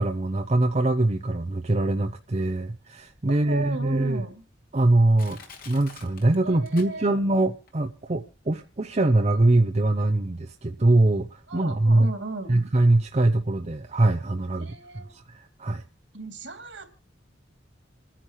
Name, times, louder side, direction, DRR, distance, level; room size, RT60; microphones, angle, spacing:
voice 1, 0.0-4.2 4.7-5.4 5.7-12.1 12.5-14.7 14.9-15.8, right 2 dB, 35° right, 0.7 m, -23 dB
Crushing, 3.1-3.2 3.8-3.9 4.6-4.7 5.2-7.4 7.7-7.8, left 5 dB, 50° left, 2.4 m, -47 dB
voice 2, 3.3-4.4 6.4-7.1 11.5-12.6 14.6-15.1 16.1-17.0, right 2 dB, 70° right, 2.7 m, -35 dB
28.5 x 10.0 x 3.1 m
head